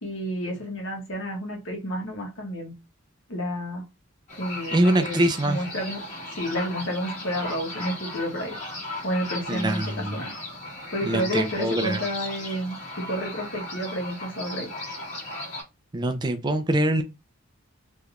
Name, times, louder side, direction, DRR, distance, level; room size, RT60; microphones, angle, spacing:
voice 1, 0.0-2.7 3.3-3.8 4.4-5.2 5.4-6.0 6.3-8.6 9.0-10.3 10.9-14.7, equal, 60° left, 1.2 m, -30 dB
sound 1, 4.3-15.6, left 2 dB, 35° left, 1.4 m, -36 dB
voice 2, 4.7-5.6 9.5-10.2 11.0-12.0 15.9-17.0, right 1 dB, 20° right, 0.4 m, -24 dB
3.2 x 2.9 x 2.4 m
head